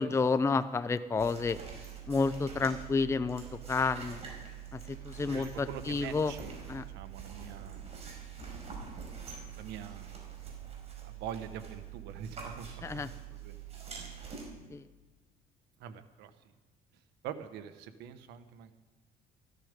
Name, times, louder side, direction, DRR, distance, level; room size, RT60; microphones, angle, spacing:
voice 1, 0.0-1.6 2.1-4.2 4.7-4.8 5.1-6.3 6.7-6.8 12.8-13.1 14.7-14.8, left 4 dB, 15° left, 12 dB, 0.5 m, -30 dB
sound 1, 1.2-14.4, right 7 dB, 40° right, 5.0 m, -45 dB
voice 2, 5.2-6.5 6.9-8.0 9.6-10.2 11.0-12.7 12.9-13.6 13.9-14.1 15.8-16.3 17.2-18.7, right 8 dB, 85° right, 10 dB, 1.2 m, -44 dB
15.0 x 13.0 x 5.2 m, 1.3 s
cardioid pair, 110°, 17 cm